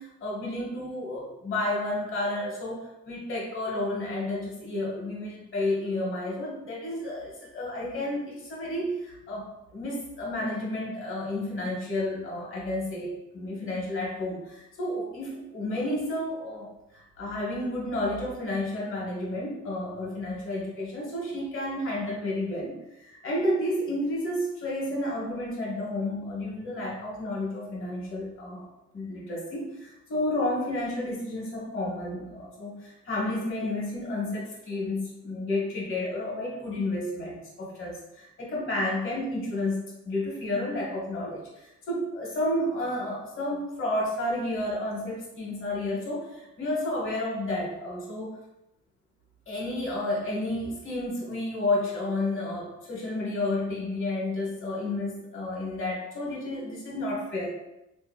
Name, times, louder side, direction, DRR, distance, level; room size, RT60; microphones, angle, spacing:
voice 1, 0.0-28.7 28.9-48.3 49.5-57.5, left 1 dB, 45° left, -3 dB, 1.1 m, -31 dB
2.7 x 2.6 x 2.2 m, 0.88 s
cardioid pair, 90°, 30 cm